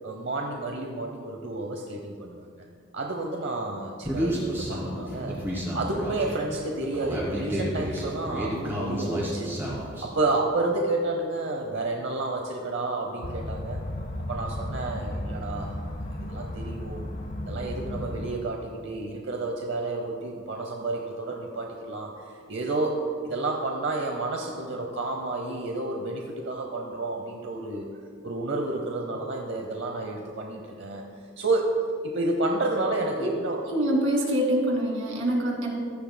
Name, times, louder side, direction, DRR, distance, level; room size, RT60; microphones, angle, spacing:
voice 1, 0.0-2.6 2.9-5.4 5.7-9.5 10.0-13.8 14.3-15.7 16.0-17.0 17.5-23.0 23.2-27.9 28.2-31.0 31.4-31.8 32.0-33.6, right 2 dB, 55° right, 2 dB, 0.8 m, -30 dB
Human voice, 4.0-10.0, equal, 10° right, 2.6 m, -31 dB
sound 1, 13.2-18.4, left 1 dB, 40° left, 0.9 m, -34 dB
voice 2, 33.7-35.7, right 1 dB, 80° right, 0 dB, 2.3 m, -25 dB
15.5 x 13.5 x 2.2 m, 2.3 s
head